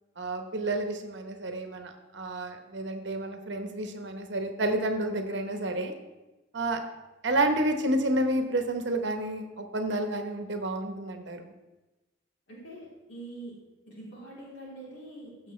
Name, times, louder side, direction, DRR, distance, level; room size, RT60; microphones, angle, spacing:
voice 1, 0.2-5.9 6.5-6.8 7.2-11.5, right 1 dB, 65° right, 5 dB, 1.0 m, -30 dB
voice 2, 12.5-13.6 13.8-15.5, right 1 dB, 65° left, -6 dB, 3.4 m, -44 dB
14.5 x 6.5 x 3.2 m, 1.1 s
head